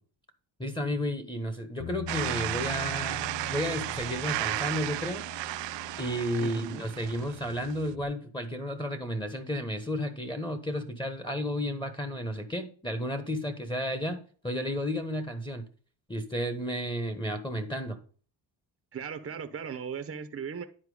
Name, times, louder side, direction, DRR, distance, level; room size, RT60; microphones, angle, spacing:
voice 1, 0.6-3.2 3.5-5.3 6.0-15.7 16.1-18.0, equal, 10° left, 5 dB, 1.2 m, -32 dB
Bass guitar, 1.8-8.0, left 8 dB, 80° left, 1.2 m, -44 dB
sound 1, 2.1-7.9, right 17 dB, 70° right, 0.5 m, -34 dB
voice 2, 6.4-6.9 18.9-20.7, right 7 dB, 30° right, 8 dB, 0.8 m, -37 dB
10.0 x 4.5 x 4.9 m, 0.41 s
cardioid pair, 100°, 44 cm